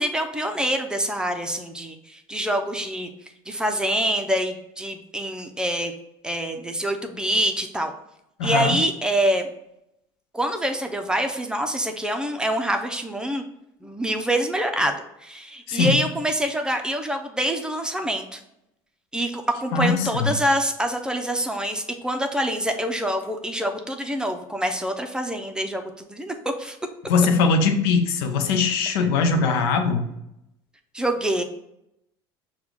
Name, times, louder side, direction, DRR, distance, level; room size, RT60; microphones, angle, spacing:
voice 1, 0.0-3.1 3.5-5.9 6.2-7.9 8.4-9.5 10.3-13.4 13.8-18.4 19.1-26.8 30.9-31.4, right 1 dB, 5° right, 4 dB, 0.6 m, -26 dB
voice 2, 8.4-8.7 15.7-16.0 19.7-20.3 27.1-30.1, left 4 dB, 75° left, 7 dB, 0.6 m, -21 dB
5.8 x 2.4 x 3.5 m, 0.82 s
hypercardioid pair, 75°, 13 cm